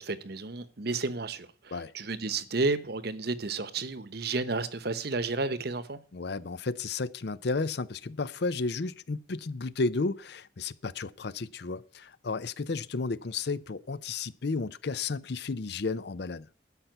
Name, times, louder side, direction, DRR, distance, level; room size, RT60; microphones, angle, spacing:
voice 1, 0.0-6.0, right 3 dB, 55° right, 0.9 m, -32 dB
voice 2, 6.1-16.5, left 3 dB, 55° left, 0.6 m, -33 dB
12.0 x 5.8 x 9.1 m
head